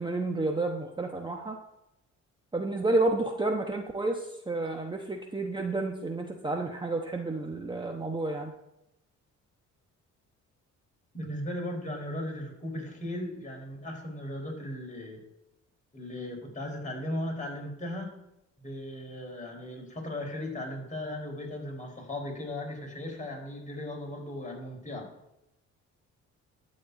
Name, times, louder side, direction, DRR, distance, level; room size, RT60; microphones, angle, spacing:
voice 1, 0.0-1.6 2.5-8.5, right 2 dB, 15° right, 2 dB, 1.1 m, -30 dB
voice 2, 11.1-15.2 15.9-18.1 18.6-25.1, left 1 dB, 25° left, 0 dB, 4.3 m, -37 dB
12.5 x 4.4 x 8.3 m, 0.87 s
cardioid pair, 90°, 30 cm